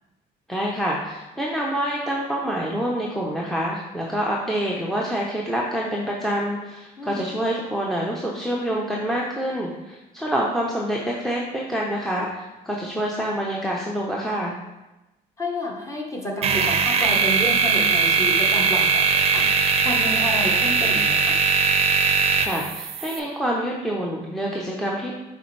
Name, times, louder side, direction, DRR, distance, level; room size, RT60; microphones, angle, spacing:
voice 1, 0.5-14.6 22.4-25.1, equal, ahead, -3 dB, 0.7 m, -27 dB
voice 2, 15.4-19.5 19.8-21.4, left 1 dB, 20° left, 0 dB, 1.1 m, -30 dB
sound 1, 16.4-23.2, right 5 dB, 35° right, 0.6 m, -20 dB
6.8 x 4.3 x 3.2 m, 1.0 s
cardioid pair, 110°, 17 cm